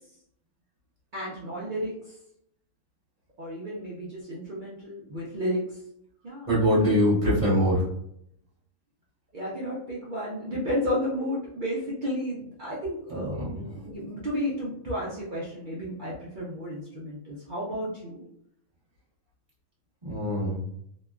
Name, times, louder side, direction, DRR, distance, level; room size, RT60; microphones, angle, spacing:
voice 1, 1.1-2.2 3.4-5.8 6.2-6.5 6.8-7.0 9.3-18.2, equal, 60° right, -6 dB, 0.5 m, -32 dB
voice 2, 6.5-7.8 13.1-13.5 20.0-20.6, equal, 25° right, -8 dB, 1.0 m, -23 dB
3.0 x 2.2 x 2.3 m, 0.73 s
omnidirectional pair, 1.5 m